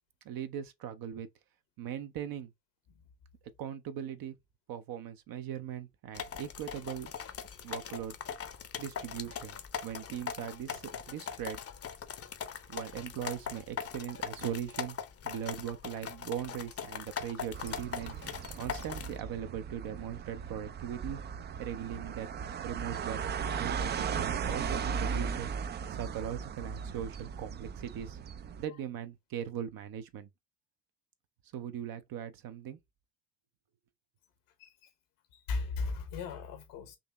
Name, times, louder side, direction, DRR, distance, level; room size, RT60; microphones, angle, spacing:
voice 1, 0.2-1.3 1.8-2.5 3.6-4.3 4.7-7.1 7.6-8.2 8.8-11.6 12.7-15.0 15.2-18.2 18.5-21.2 21.6-22.3 22.6-23.2 23.5-25.5 25.9-28.2 28.6-30.3 31.5-32.8, right 9 dB, 50° right, 0.7 m, -39 dB
sound 1, 6.1-19.2, left 7 dB, 35° left, 0.7 m, -41 dB
sound 2, 17.5-28.6, right 6 dB, 25° right, 0.4 m, -37 dB
voice 2, 35.3-37.0, left 4 dB, 70° left, 1.2 m, -37 dB
3.9 x 2.8 x 3.5 m
figure-of-eight pair, 50°, 44 cm